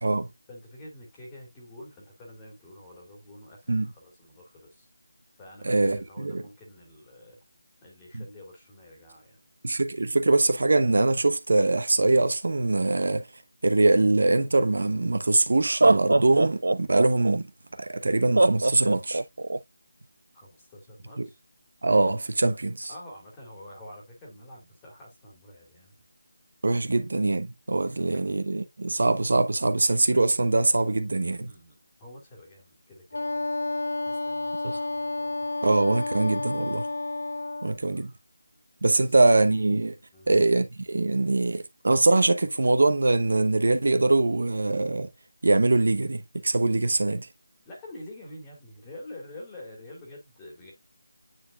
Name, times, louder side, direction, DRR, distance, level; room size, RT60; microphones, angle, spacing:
voice 1, 0.5-4.9 5.4-7.4 7.8-9.4 20.3-21.4 22.9-26.0 28.1-28.3 31.5-33.4 34.0-35.4 37.6-38.2 38.9-39.1 40.1-40.3 47.7-50.7, left 1 dB, 10° left, 2.3 m, -47 dB
voice 2, 5.6-6.4 8.1-8.2 9.6-13.3 13.6-17.5 17.8-19.2 21.2-21.3 21.8-22.9 26.6-31.5 34.6-34.8 35.6-36.9 37.6-38.1 38.8-39.9 40.3-45.1 45.4-47.3, right 2 dB, 60° right, 1.1 m, -23 dB
Laughter, 14.9-15.0 15.6-17.4 18.4-19.6, right 2 dB, 85° right, 0.6 m, -22 dB
Wind instrument woodwind instrument, 33.1-37.8, left 2 dB, 85° left, 0.6 m, -30 dB
9.4 x 4.5 x 2.4 m
figure-of-eight pair, 175°, 0 cm